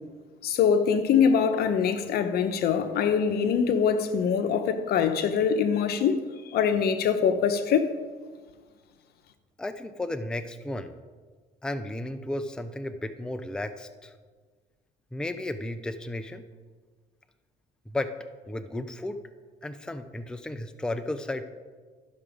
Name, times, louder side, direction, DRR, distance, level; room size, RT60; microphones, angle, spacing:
voice 1, 0.4-7.9, left 7 dB, 65° left, 0.9 m, -24 dB
voice 2, 9.6-11.0 11.6-14.1 15.1-16.5 17.9-18.1 18.5-19.2 19.6-21.4, left 1 dB, 5° left, 0.5 m, -33 dB
12.5 x 6.0 x 5.0 m
cardioid pair, 110°, 17 cm